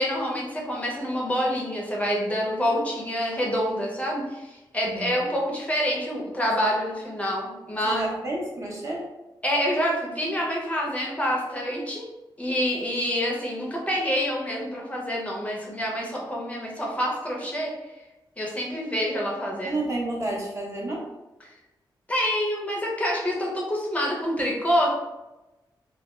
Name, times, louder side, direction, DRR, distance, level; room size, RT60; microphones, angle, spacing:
voice 1, 0.0-8.1 9.4-12.1 12.4-17.7 18.4-19.8 21.4-21.5 22.1-24.9, equal, 15° left, -2 dB, 0.5 m, -27 dB
voice 2, 7.8-9.1 19.6-21.0, right 1 dB, 35° right, -3 dB, 0.7 m, -30 dB
2.2 x 2.1 x 3.0 m, 1.0 s
wide cardioid pair, 105°, 8 cm